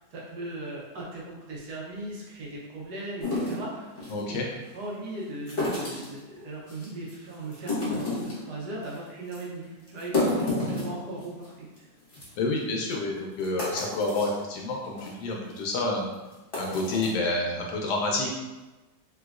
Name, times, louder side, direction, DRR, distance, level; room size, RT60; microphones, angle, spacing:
voice 1, 0.0-4.0 4.3-11.9, right 2 dB, 70° right, -4 dB, 1.3 m, -38 dB
sound 1, 3.2-4.2 5.5-6.2 6.7-7.1 7.5-8.5 8.8-9.0 9.3-9.4 9.9-11.5 11.8-11.9 12.1-12.3 12.9-13.0 13.4-14.4 14.8-15.1 15.6-15.7 16.3-17.1, left 2 dB, 35° left, 1.1 m, -30 dB
voice 2, 4.1-4.4 12.4-16.1 16.6-18.3, left 2 dB, 75° left, 0 dB, 1.1 m, -29 dB
3.4 x 2.9 x 2.4 m, 1.1 s
omnidirectional pair, 2.0 m